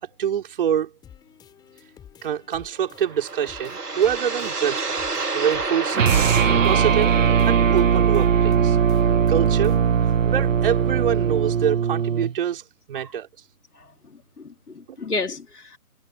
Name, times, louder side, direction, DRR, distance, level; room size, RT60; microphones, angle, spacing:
voice 1, 0.2-0.9 2.2-5.0 5.3-6.2 6.5-7.2 7.4-8.8 9.3-9.8 10.2-13.3 14.9-15.0, right 9 dB, 35° right, 5.1 m, -25 dB
sound 1, 1.0-10.0, left 9 dB, 10° left, 6.8 m, -50 dB
sound 2, 2.9-8.0, right 3 dB, 90° right, 3.3 m, -29 dB
sound 3, 5.9-12.3, right 7 dB, 55° right, 0.9 m, -19 dB
voice 2, 14.1-15.8, left 3 dB, 80° left, 3.4 m, -32 dB
figure-of-eight pair, 155°, 45 cm